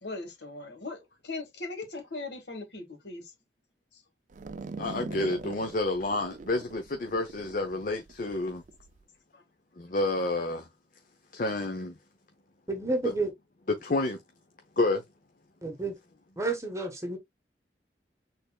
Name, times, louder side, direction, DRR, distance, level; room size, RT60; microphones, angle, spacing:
voice 1, 0.0-3.3 3.9-4.0 9.3-9.4, left 3 dB, 75° left, 2.0 m, -39 dB
sound 1, 4.3-9.0, right 4 dB, 45° right, 0.4 m, -42 dB
voice 2, 4.8-8.6 9.8-10.7 11.3-11.9 13.8-14.2 14.8-15.0, left 2 dB, 50° left, 0.7 m, -29 dB
voice 3, 12.7-13.3 15.6-16.0 16.4-17.2, right 3 dB, 15° right, 1.2 m, -30 dB
6.5 x 3.4 x 2.3 m
head